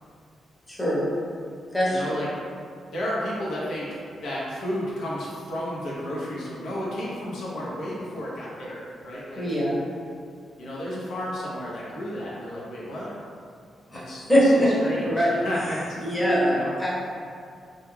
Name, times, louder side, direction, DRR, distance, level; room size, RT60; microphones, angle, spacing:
voice 1, 0.7-1.1 1.7-2.2 9.4-9.8 13.9-14.0 14.3-14.7 15.0-15.3 16.0-16.5 16.8-16.9, equal, 10° left, -8 dB, 0.7 m, -22 dB
voice 2, 1.9-2.3 2.9-3.9 4.2-9.6 10.6-13.1 13.9-16.1 16.4-16.7, equal, 85° left, -7 dB, 0.6 m, -32 dB
2.2 x 2.2 x 3.1 m, 2.3 s
cardioid pair, 110°, 0 cm